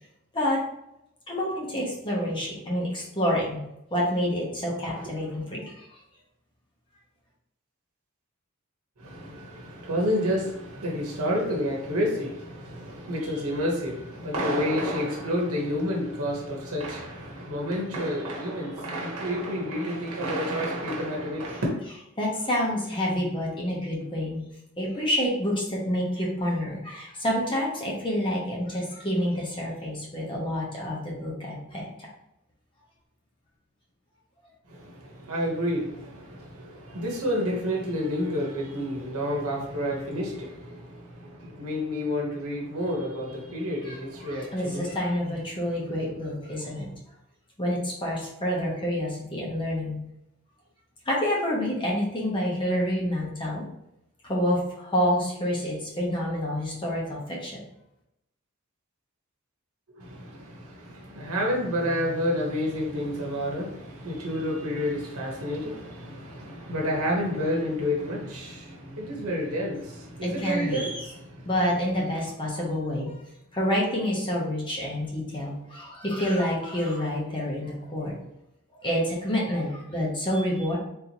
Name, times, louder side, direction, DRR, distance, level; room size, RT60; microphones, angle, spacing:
voice 1, 1.3-3.6 3.9-6.0 22.2-24.4 24.8-32.1 43.8-46.9 47.6-50.0 51.0-53.6 54.2-57.6 70.2-71.1 71.4-73.1 73.5-78.1 78.8-80.8, equal, 25° left, -4 dB, 0.8 m, -28 dB
voice 2, 9.0-21.7 34.7-44.9 60.0-71.5 80.3-80.4, equal, 85° right, -2 dB, 1.0 m, -29 dB
3.8 x 2.8 x 2.9 m, 0.83 s
head